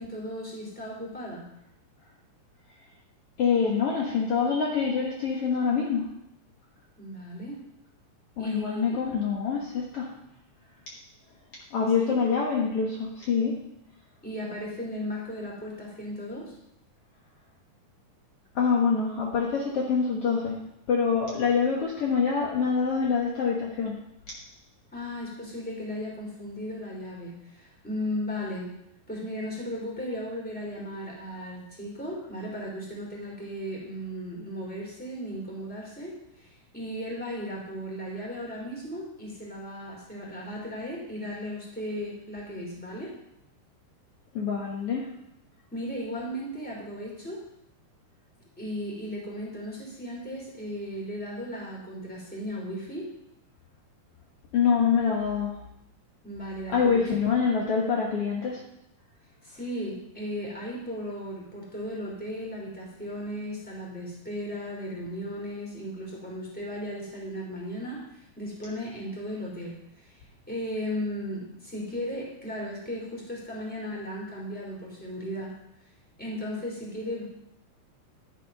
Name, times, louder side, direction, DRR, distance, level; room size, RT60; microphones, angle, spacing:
voice 1, 0.0-1.5 7.0-7.6 8.4-9.0 12.0-12.2 14.2-16.5 24.9-28.7 29.1-43.1 45.7-47.4 48.6-53.1 56.2-57.1 59.4-75.6 76.2-77.2, equal, 5° left, -3 dB, 2.4 m, -36 dB
voice 2, 3.4-6.0 8.4-10.1 11.7-13.6 18.5-20.6 20.9-24.0 44.3-45.1 54.5-55.5 56.7-58.6, left 6 dB, 80° left, -2 dB, 1.3 m, -25 dB
11.0 x 7.5 x 5.4 m, 0.79 s
omnidirectional pair, 4.8 m